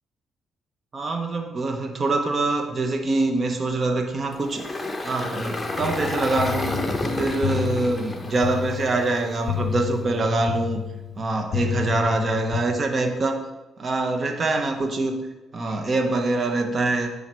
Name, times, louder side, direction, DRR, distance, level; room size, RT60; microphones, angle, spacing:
voice 1, 0.9-4.6 5.0-6.7 7.2-10.8 11.2-13.4 13.8-15.3 15.5-17.1, right 2 dB, 40° right, 5 dB, 1.0 m, -24 dB
Engine, 4.3-9.6, left 2 dB, 20° left, 1.0 m, -30 dB
sound 1, 5.8-12.6, left 10 dB, 70° left, 0.5 m, -31 dB
9.2 x 5.5 x 4.6 m, 1.1 s
cardioid pair, 90°, 0 cm